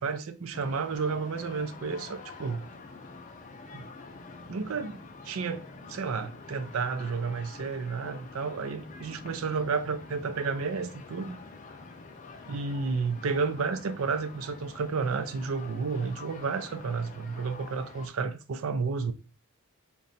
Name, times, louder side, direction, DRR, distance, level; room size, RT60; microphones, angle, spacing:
voice 1, 0.0-2.7 3.7-3.9 4.5-5.6 5.9-11.4 12.5-19.1, right 5 dB, 70° right, 0.4 m, -31 dB
sound 1, 0.5-18.1, left 3 dB, 35° left, 0.5 m, -47 dB
3.8 x 2.3 x 4.0 m
head